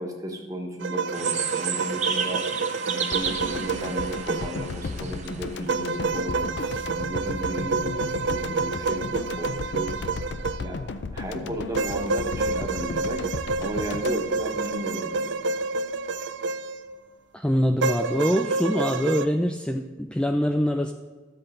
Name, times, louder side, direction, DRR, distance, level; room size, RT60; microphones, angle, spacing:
voice 1, 0.0-2.5 2.9-6.5 6.9-9.9 10.6-10.8 11.1-13.3 13.6-15.4, equal, 20° right, 2 dB, 1.2 m, -34 dB
sound 1, 0.8-4.7 5.7-11.0 11.7-17.0 17.8-19.3, right 4 dB, 70° right, 0.4 m, -29 dB
sound 2, 1.1-5.7, right 6 dB, 40° right, 0.8 m, -32 dB
sound 3, 3.1-15.3 15.6-15.7, left 3 dB, 65° left, 0.5 m, -35 dB
voice 2, 17.3-20.9, equal, 5° left, 3 dB, 0.3 m, -24 dB
12.0 x 7.8 x 3.8 m, 1.4 s
head